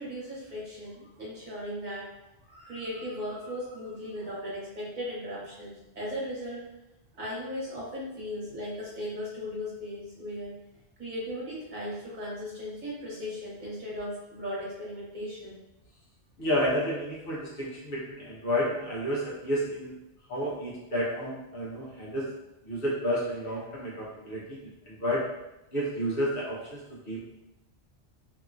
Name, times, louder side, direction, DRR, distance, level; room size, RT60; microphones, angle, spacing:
voice 1, 0.0-2.1 2.4-6.6 7.1-10.5 11.0-15.6, equal, 40° right, -6 dB, 1.2 m, -37 dB
voice 2, 16.4-19.9 20.3-22.3 22.6-24.6 24.9-25.3 25.7-27.3, equal, 55° left, -5 dB, 1.1 m, -31 dB
2.9 x 2.8 x 2.4 m, 0.94 s
omnidirectional pair, 1.2 m